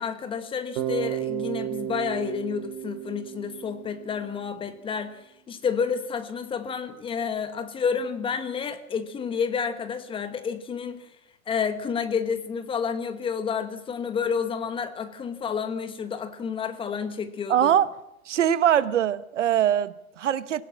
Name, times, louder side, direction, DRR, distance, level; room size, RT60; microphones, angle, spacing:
voice 1, 0.0-5.2 5.5-11.1 11.5-17.7, left 6 dB, 10° left, 1.3 m, -30 dB
Bass guitar, 0.8-4.7, right 12 dB, 40° right, 3.0 m, -33 dB
voice 2, 17.5-17.9 18.3-20.6, right 10 dB, 55° right, 1.2 m, -22 dB
25.5 x 16.0 x 7.3 m
hypercardioid pair, 125°, 43 cm